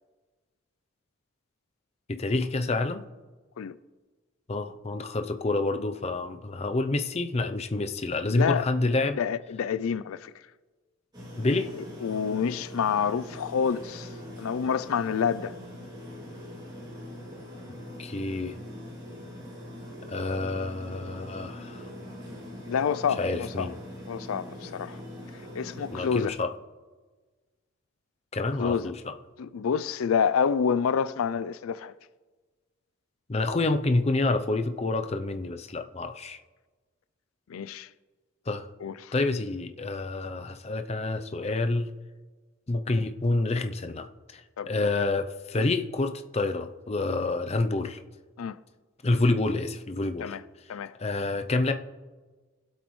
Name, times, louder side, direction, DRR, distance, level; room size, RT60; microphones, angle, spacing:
voice 1, 2.1-3.0 4.5-9.2 11.4-11.7 18.0-18.5 20.1-21.8 23.2-23.7 25.9-26.5 28.3-28.9 33.3-36.4 38.5-38.7 39.1-41.9 42.7-44.1 44.3-48.0 49.0-50.4 51.0-51.7, left 2 dB, 30° left, 0.5 m, -28 dB
voice 2, 8.3-8.7 9.2-10.3 11.7-14.1 14.4-15.6 22.7-23.7 24.1-25.0 25.5-26.3 28.6-28.9 29.4-31.9 37.5-37.9 38.8-39.1 44.6-44.7 48.4-48.6 50.2-50.4 50.7-50.9, left 7 dB, 90° left, 0.4 m, -28 dB
sound 1, 11.1-26.3, left 1 dB, 20° right, 2.7 m, -42 dB
21.5 x 8.2 x 3.2 m
head